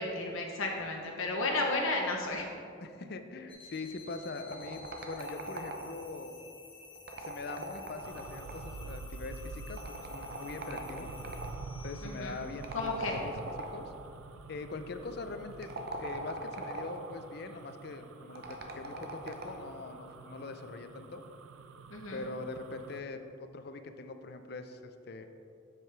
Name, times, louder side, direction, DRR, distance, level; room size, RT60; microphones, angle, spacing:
voice 1, 0.0-2.5 12.0-12.4 12.7-13.2 21.9-22.2, left 2 dB, 80° left, 0 dB, 0.8 m, -33 dB
voice 2, 2.8-6.4 7.1-11.1 11.8-13.3 13.7-13.8 14.5-15.7 16.0-21.2 22.1-25.3, left 3 dB, 50° left, 8 dB, 0.5 m, -42 dB
sound 1, 3.5-15.5, left 4 dB, 25° left, 1.1 m, -54 dB
sound 2, 4.5-6.1 7.0-8.8 9.8-11.6 12.6-14.0 15.5-17.1 18.4-19.7, right 2 dB, 50° right, 0.7 m, -41 dB
sound 3, 8.0-23.0, right 4 dB, 85° right, 0.4 m, -47 dB
7.5 x 7.5 x 3.4 m, 2.6 s
head